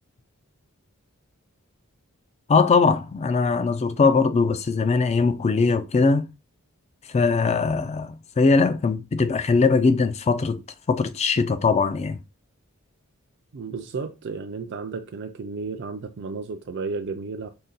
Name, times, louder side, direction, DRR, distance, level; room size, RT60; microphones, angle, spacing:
voice 1, 2.5-6.3 7.1-10.6 10.9-12.2, left 4 dB, 30° left, 0.4 m, -21 dB
voice 2, 13.5-17.5, right 4 dB, 55° right, 0.4 m, -33 dB
3.8 x 2.2 x 3.9 m
head